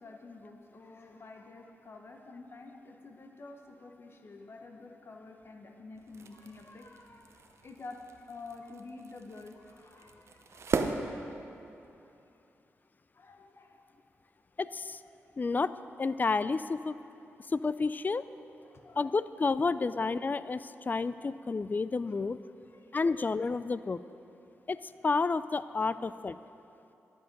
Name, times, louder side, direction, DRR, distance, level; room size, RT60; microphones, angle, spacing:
voice 1, 0.0-8.0 8.3-10.6 13.1-13.8 18.7-19.0 22.8-23.0, left 3 dB, 50° left, 3 dB, 0.9 m, -49 dB
sound 1, 5.9-11.9, right 4 dB, 60° right, 0.7 m, -38 dB
voice 2, 14.6-15.0 15.4-15.7 16.0-16.9 17.5-18.2 19.0-22.4 22.9-24.0 24.7-24.8 25.0-26.4, left 4 dB, 35° left, 15 dB, 0.3 m, -30 dB
12.0 x 7.9 x 5.2 m, 2.8 s
cardioid pair, 60°, 5 cm